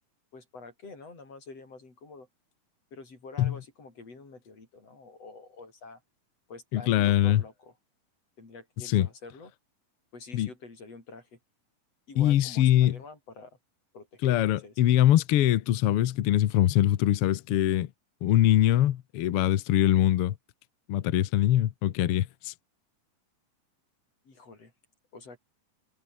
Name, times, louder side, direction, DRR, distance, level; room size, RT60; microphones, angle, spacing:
voice 1, 0.3-2.3 2.9-6.0 6.5-7.7 8.4-9.5 10.1-11.4 12.1-13.6 13.9-14.8 24.3-24.7 25.1-25.4, left 3 dB, 45° left, 7.4 m, -47 dB
voice 2, 6.7-7.4 8.8-9.1 10.3-10.5 12.2-13.0 14.2-17.9 18.2-20.3 20.9-22.5, left 12 dB, 85° left, 1.2 m, -23 dB
omnidirectional pair, 4.0 m